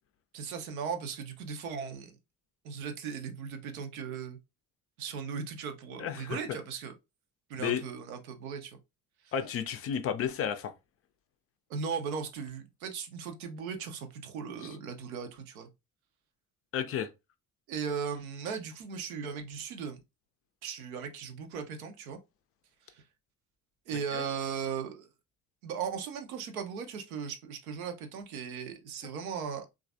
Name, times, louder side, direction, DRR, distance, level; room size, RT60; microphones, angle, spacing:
voice 1, 0.3-2.2 2.6-4.4 5.0-6.9 7.5-8.8 9.2-9.3 11.7-15.7 17.7-20.0 20.6-22.2 22.9-23.0 23.9-25.1 25.6-29.7, right 6 dB, 75° right, 0.6 m, -37 dB
voice 2, 6.0-6.4 7.6-7.8 9.3-10.7 16.7-17.1 24.1-24.2, left 8 dB, 35° left, 0.4 m, -32 dB
3.1 x 2.3 x 2.4 m
figure-of-eight pair, 45°, 43 cm